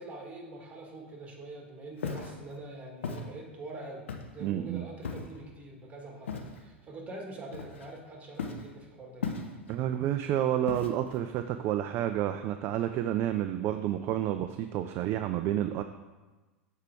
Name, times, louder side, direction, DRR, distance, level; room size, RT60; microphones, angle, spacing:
voice 1, 0.0-4.0 4.3-6.3 6.6-9.4, right 2 dB, 20° right, 0 dB, 1.6 m, -44 dB
Walk footsteps, 2.0-2.4 3.0-3.3 4.1-4.4 5.0-5.4 6.3-6.6 7.5-8.0 8.4-8.7 9.2-9.8 10.7-11.2, left 5 dB, 70° left, 0.7 m, -36 dB
voice 2, 4.4-4.9 9.7-15.8, right 11 dB, 40° right, 8 dB, 0.3 m, -30 dB
6.6 x 4.6 x 4.7 m, 1.2 s
figure-of-eight pair, 85°, 7 cm